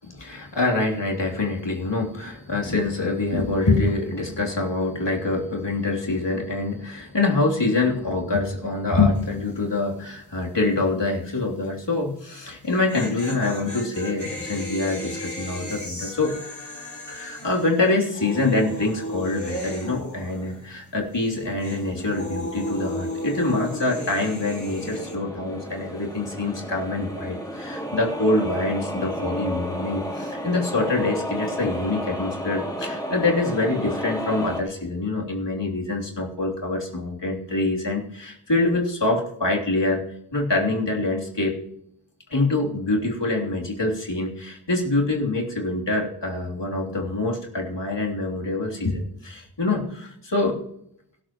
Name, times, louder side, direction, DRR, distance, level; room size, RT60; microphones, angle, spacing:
voice 1, 0.0-16.3 17.1-40.0 40.3-41.6 42.3-50.6, left 2 dB, 75° left, -3 dB, 3.4 m, -25 dB
sound 1, 9.1-9.5 9.8-9.9 12.5-20.9 21.1-25.2, left 1 dB, 40° left, 4.1 m, -35 dB
sound 2, 22.2-34.6, equal, 10° left, 4.0 m, -33 dB
23.0 x 13.0 x 3.1 m, 0.73 s
wide cardioid pair, 40°, 43 cm